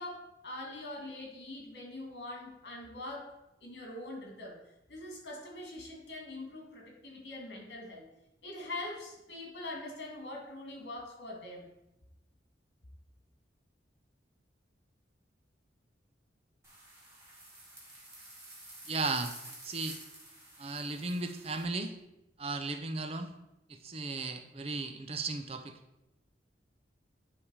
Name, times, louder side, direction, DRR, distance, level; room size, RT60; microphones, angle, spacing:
voice 1, 0.0-3.3 3.6-4.6 4.9-8.0 8.4-11.6, left 2 dB, 65° left, 0 dB, 2.3 m, -43 dB
sound 1, 16.6-21.6, right 1 dB, 15° right, 2.1 m, -50 dB
voice 2, 18.9-19.3 19.6-20.0 20.6-21.9 22.4-23.3 23.7-25.7, right 3 dB, 30° right, 7 dB, 0.5 m, -35 dB
9.9 x 3.5 x 4.8 m, 0.91 s
head